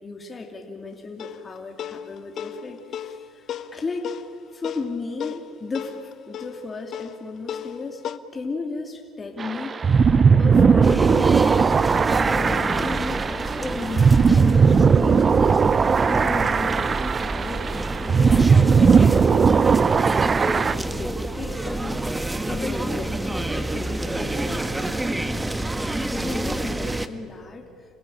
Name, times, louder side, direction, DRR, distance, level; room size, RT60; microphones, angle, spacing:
voice 1, 0.0-4.1 4.5-8.0 8.3-17.6 18.0-18.4 18.8-25.4 26.1-28.0, left 3 dB, 30° left, 2 dB, 2.7 m, -35 dB
sound 1, 1.2-8.2, left 9 dB, 55° left, 1.0 m, -36 dB
sound 2, 9.4-20.7, right 5 dB, 35° right, 0.6 m, -18 dB
sound 3, 10.8-27.1, right 1 dB, 10° right, 1.3 m, -28 dB
27.5 x 15.5 x 10.0 m, 2.1 s
supercardioid pair, 85°, 0 cm